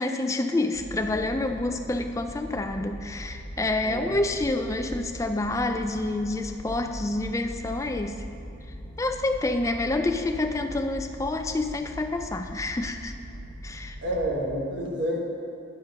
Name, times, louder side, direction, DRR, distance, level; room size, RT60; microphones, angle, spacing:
voice 1, 0.0-8.3 9.0-13.1 13.6-14.0, left 2 dB, 15° left, 6 dB, 0.3 m, -28 dB
sound 1, 0.7-14.5, equal, 35° left, 1.6 m, -41 dB
voice 2, 14.0-15.2, equal, 75° right, -2 dB, 1.4 m, -28 dB
10.5 x 4.4 x 5.3 m, 2.6 s
head